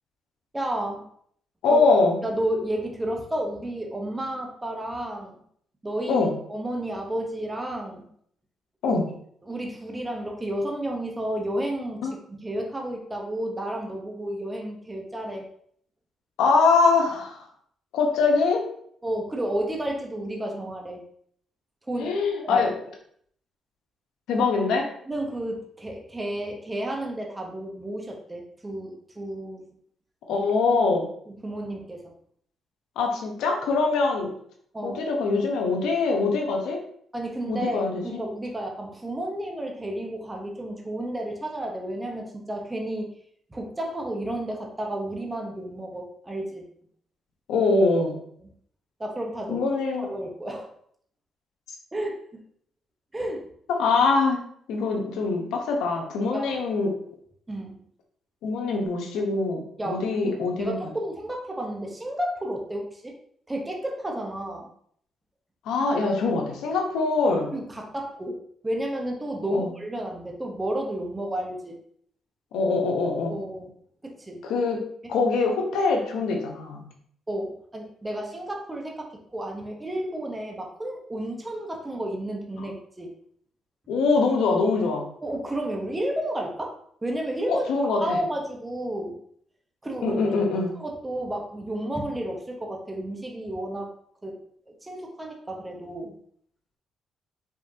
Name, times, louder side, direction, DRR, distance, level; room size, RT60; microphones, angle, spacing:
voice 1, 0.5-1.0 1.7-1.8 2.2-5.4 5.8-6.2 6.5-8.1 8.9-9.0 9.4-15.5 19.0-21.0 21.9-22.1 22.4-22.6 24.4-24.5 25.1-29.7 31.4-32.1 34.7-35.0 37.1-43.1 43.5-46.6 49.0-49.6 50.0-50.7 51.9-52.4 53.1-53.4 56.3-56.6 57.5-57.8 59.8-63.1 63.5-64.7 67.5-71.8 73.3-73.7 74.0-74.4 75.0-75.1 77.3-83.1 85.2-86.8 87.0-87.6 88.0-89.2 89.8-90.2 90.8-93.9 94.2-94.4 94.7-96.2, right 1 dB, 15° right, 1 dB, 1.0 m, -32 dB
voice 2, 1.6-2.2 6.1-6.3 8.8-9.1 12.0-12.1 16.4-17.4 17.9-18.6 22.0-22.7 24.3-24.8 30.3-31.1 33.0-34.3 34.8-36.8 37.5-38.2 47.5-48.2 49.5-50.1 53.7-54.4 54.7-56.9 58.4-60.8 65.6-67.5 69.5-69.7 72.5-73.4 74.4-74.8 75.1-76.8 83.9-85.1 87.5-88.2 90.0-90.7, left 4 dB, 85° left, 1 dB, 1.0 m, -23 dB
5.1 x 3.4 x 2.8 m, 0.64 s
cardioid pair, 90°, 0 cm